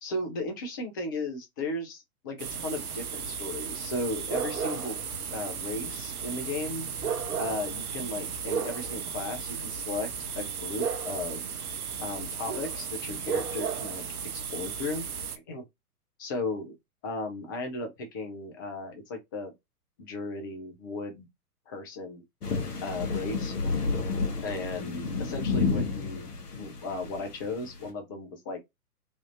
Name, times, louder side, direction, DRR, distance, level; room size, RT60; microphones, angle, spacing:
voice 1, 0.0-5.0 5.3-6.9 7.4-10.1 10.4-11.4 12.0-14.0 14.3-15.0 15.3-15.6 16.2-16.8 17.0-19.5 20.0-21.3 21.7-22.2 22.8-23.5 24.4-26.3 26.6-28.6, left 2 dB, 15° left, 0.4 m, -35 dB
sound 1, 2.4-15.4, right 6 dB, 70° right, 0.8 m, -34 dB
sound 2, 22.4-27.9, left 4 dB, 80° left, 1.1 m, -31 dB
3.4 x 2.5 x 2.4 m
figure-of-eight pair, 115°, 47 cm